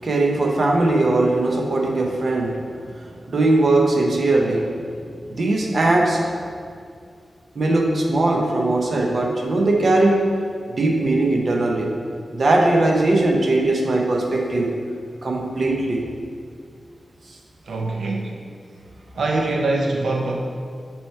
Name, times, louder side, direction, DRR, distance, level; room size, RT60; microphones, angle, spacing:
voice 1, 0.0-2.6 3.3-4.7 5.3-6.4 7.6-10.4 10.8-11.9 12.3-14.7 15.2-16.0 18.0-18.1, right 2 dB, 45° right, 0 dB, 0.8 m, -19 dB
voice 2, 17.6-18.4 19.1-20.3, right 2 dB, 85° right, 0 dB, 0.5 m, -23 dB
8.5 x 3.1 x 4.4 m, 2.3 s
wide cardioid pair, 175°, 0 cm